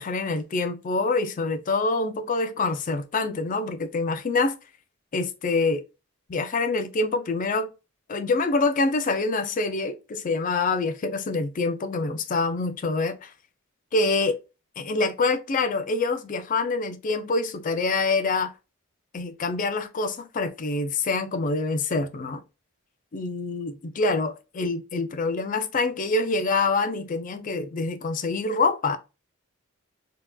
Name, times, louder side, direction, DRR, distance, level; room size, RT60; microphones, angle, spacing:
voice 1, 0.0-4.6 5.1-5.8 6.3-7.7 8.1-13.3 13.9-14.4 14.8-18.5 19.1-22.4 23.1-29.0, left 3 dB, 40° left, 0.4 m, -26 dB
4.2 x 2.8 x 2.2 m
head